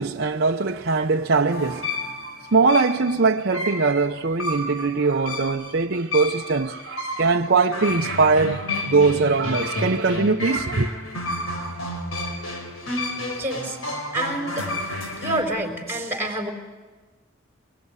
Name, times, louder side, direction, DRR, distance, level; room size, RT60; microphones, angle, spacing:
voice 1, 0.0-1.9 2.2-10.9, right 4 dB, 55° right, 0.7 m, -21 dB
sound 1, 1.5-15.4, left 2 dB, 90° left, 4.4 m, -31 dB
voice 2, 13.4-13.8 14.1-14.7 15.2-16.5, right 1 dB, 10° right, 4.1 m, -27 dB
24.5 x 22.0 x 9.7 m
head